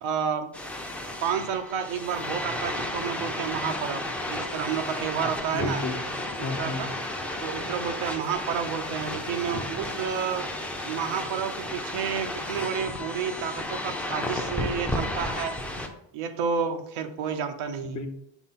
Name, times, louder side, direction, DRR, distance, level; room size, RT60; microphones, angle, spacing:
voice 1, 0.0-0.5 1.2-5.9 6.6-6.9 7.4-10.5 10.8-15.6 16.1-18.0, right 7 dB, 80° right, 7 dB, 1.0 m, -30 dB
sound 1, 0.5-15.9, left 1 dB, 5° left, 0.6 m, -33 dB
voice 2, 5.5-6.8 9.5-9.6 17.8-18.1, left 3 dB, 40° left, 6 dB, 0.8 m, -33 dB
6.0 x 4.6 x 4.2 m, 0.78 s
cardioid pair, 135°, 47 cm